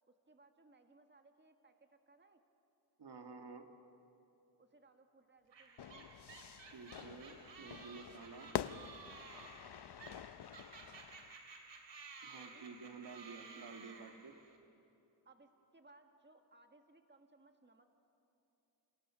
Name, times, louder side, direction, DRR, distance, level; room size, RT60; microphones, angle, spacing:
voice 1, 0.1-2.4 4.6-6.1 12.4-12.8 15.3-17.9, right 2 dB, 25° right, 5 dB, 2.0 m, -65 dB
voice 2, 3.0-3.7 6.7-8.5 12.2-14.3, right 4 dB, 65° right, 4 dB, 2.1 m, -51 dB
sound 1, 5.5-14.6, right 4 dB, 90° right, 2.7 m, -55 dB
Fire / Fireworks, 5.8-11.3, left 9 dB, 70° left, 0.8 m, -46 dB
30.0 x 28.0 x 6.4 m, 2.9 s
cardioid pair, 65°, 42 cm